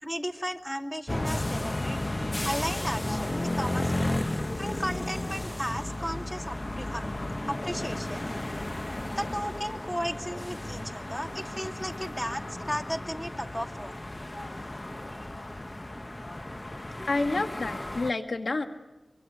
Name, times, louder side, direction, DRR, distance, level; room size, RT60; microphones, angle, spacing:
voice 1, 0.0-2.0 2.4-4.1 4.6-7.1 7.5-8.3 9.2-14.0, equal, 5° left, 4 dB, 2.5 m, -35 dB
sound 1, 1.1-18.1, left 1 dB, 30° left, 1.0 m, -33 dB
voice 2, 17.1-18.7, left 3 dB, 85° left, 5 dB, 1.7 m, -29 dB
25.5 x 24.5 x 7.9 m, 1.0 s
wide cardioid pair, 50°, 0 cm